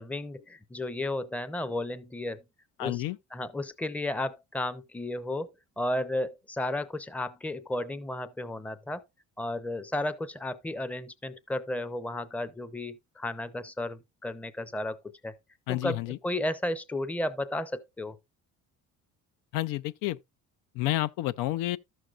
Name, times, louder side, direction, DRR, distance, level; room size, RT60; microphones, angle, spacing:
voice 1, 0.0-2.4 2.8-3.0 3.3-9.0 9.4-15.0 15.2-15.4 15.7-18.2, left 1 dB, 5° left, 0.5 m, -33 dB
voice 2, 2.8-3.2 15.7-16.2 19.5-20.2 20.8-21.8, left 16 dB, 85° left, 0.5 m, -30 dB
13.0 x 6.4 x 2.4 m
cardioid pair, 115°, 32 cm